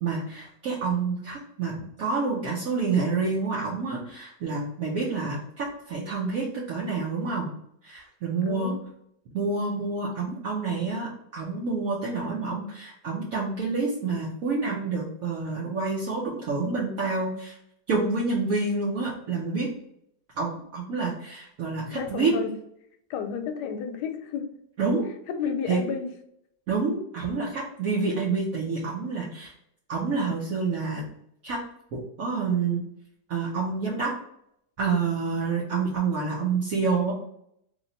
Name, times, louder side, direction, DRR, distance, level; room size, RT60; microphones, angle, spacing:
voice 1, 0.0-7.5 7.8-8.8 9.3-17.6 17.9-19.7 20.4-22.3 24.8-25.1 25.7-25.8 26.7-29.5 29.9-31.1 31.4-31.6 31.9-32.8 33.3-34.1 34.8-37.1, right 4 dB, 60° right, -4 dB, 1.1 m, -28 dB
voice 2, 8.5-8.8 21.9-22.5 23.1-24.4 25.4-26.1, left 7 dB, 75° left, 6 dB, 1.1 m, -31 dB
3.1 x 2.8 x 3.9 m, 0.74 s
omnidirectional pair, 1.9 m